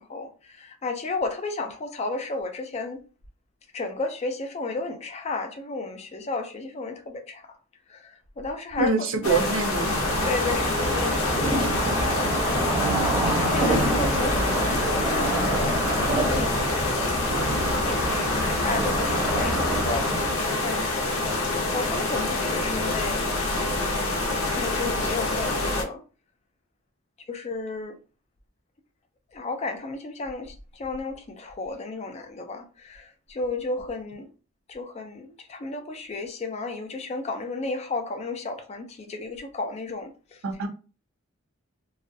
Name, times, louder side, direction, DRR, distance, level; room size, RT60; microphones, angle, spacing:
voice 1, 0.0-3.0 3.7-7.4 7.9-8.9 9.3-9.5 10.2-12.7 13.4-20.8 21.2-23.2 24.5-26.0 27.3-28.0 29.3-34.3 34.7-40.1, left 3 dB, 30° left, 0.3 m, -33 dB
voice 2, 8.8-9.9 40.4-40.7, right 4 dB, 70° right, 0.5 m, -25 dB
sound 1, 9.2-25.8, left 2 dB, 85° left, 0.6 m, -26 dB
sound 2, 9.7-20.3, right 1 dB, 10° right, 0.6 m, -27 dB
2.3 x 2.2 x 2.6 m
head